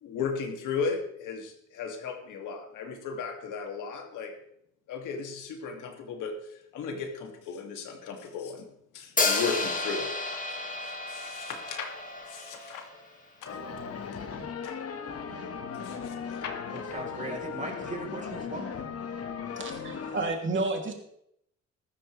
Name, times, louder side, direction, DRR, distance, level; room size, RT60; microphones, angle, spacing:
voice 1, 0.0-4.3 4.9-8.6 8.9-10.1 10.8-11.9 12.3-12.9 13.4-13.5 14.6-14.8 15.8-16.8, left 5 dB, 85° left, 3 dB, 2.6 m, -36 dB
Hi-hat, 9.2-13.1, left 3 dB, 25° left, 2.3 m, -31 dB
sound 1, 13.4-20.2, left 6 dB, 50° left, 1.7 m, -37 dB
voice 2, 16.7-18.7, right 2 dB, 25° right, 1 dB, 4.3 m, -38 dB
voice 3, 19.6-21.0, right 3 dB, 40° right, 2 dB, 3.0 m, -31 dB
14.5 x 12.5 x 3.4 m, 0.73 s
cardioid pair, 90°, 30 cm